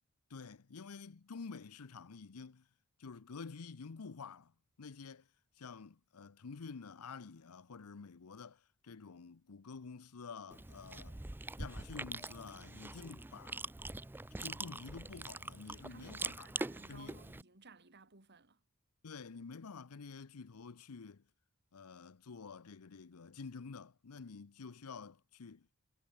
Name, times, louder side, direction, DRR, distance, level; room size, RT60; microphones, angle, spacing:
voice 1, 0.3-2.6 3.0-4.5 4.8-5.3 5.6-11.2 11.6-13.7 14.4-16.5 16.9-17.2 19.0-21.2 21.7-25.7, left 5 dB, 90° left, 0.7 m, -49 dB
Chewing mastication, 10.5-17.4, right 2 dB, 10° right, 0.4 m, -44 dB
voice 2, 15.7-18.6, right 4 dB, 50° right, 3.5 m, -58 dB
head